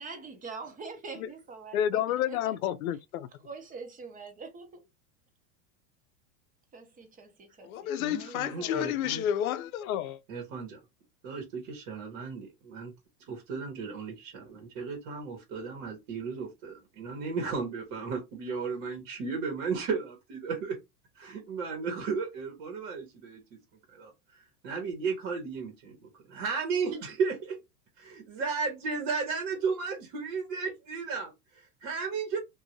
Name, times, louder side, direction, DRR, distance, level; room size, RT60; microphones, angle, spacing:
voice 1, 0.0-2.0 2.3-2.5 3.4-4.8 6.7-8.9, right 4 dB, 20° right, 0.8 m, -44 dB
voice 2, 1.7-3.3 7.6-10.2, left 10 dB, 80° left, 0.6 m, -30 dB
voice 3, 8.0-9.2 10.3-10.8 11.2-12.9 13.3-20.8 21.1-23.6 23.9-27.6 28.0-32.4, right 5 dB, 60° right, 1.4 m, -34 dB
2.7 x 2.6 x 3.0 m
supercardioid pair, 125°, 42 cm